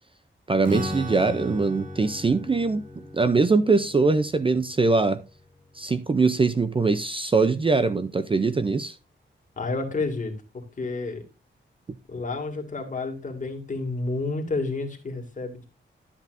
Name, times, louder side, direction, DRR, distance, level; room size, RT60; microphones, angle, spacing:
voice 1, 0.5-2.9 3.1-5.2 5.8-9.0, right 4 dB, 25° right, 0.5 m, -22 dB
Strum, 0.6-6.3, left 1 dB, 40° right, 1.8 m, -37 dB
voice 2, 9.6-10.3 10.8-11.2 12.1-15.7, left 3 dB, 40° left, 2.2 m, -30 dB
12.5 x 8.1 x 2.5 m
wide cardioid pair, 115°, 20 cm